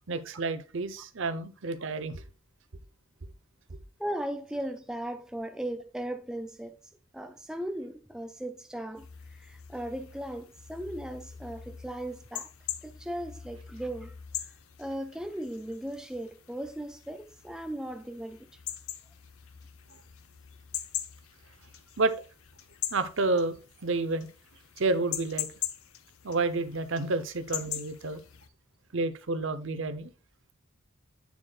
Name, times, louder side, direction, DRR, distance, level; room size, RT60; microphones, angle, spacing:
voice 1, 0.1-2.2 22.0-22.1 22.9-23.6 23.8-24.3 24.8-25.5 26.2-28.2 28.9-30.1, right 3 dB, 65° right, 0.8 m, -29 dB
voice 2, 4.0-6.8 7.1-9.1 9.4-12.5 12.8-14.2 14.8-18.5, right 1 dB, 5° right, 0.3 m, -37 dB
sound 1, 8.9-28.5, left 11 dB, 90° left, 0.7 m, -42 dB
8.6 x 7.4 x 2.3 m
head